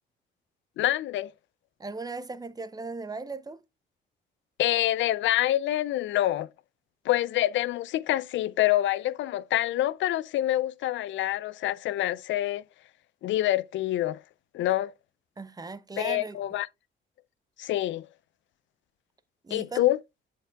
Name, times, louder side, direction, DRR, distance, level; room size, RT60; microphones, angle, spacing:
voice 1, 0.8-1.3 4.6-6.5 7.1-12.6 13.2-14.2 14.5-14.9 16.0-16.7 17.6-18.1 19.5-20.0, left 14 dB, 70° left, 0.4 m, -26 dB
voice 2, 1.8-3.6 15.4-16.4 19.4-19.9, right 3 dB, 20° right, 0.6 m, -37 dB
11.0 x 4.6 x 2.3 m
cardioid pair, 90°, 20 cm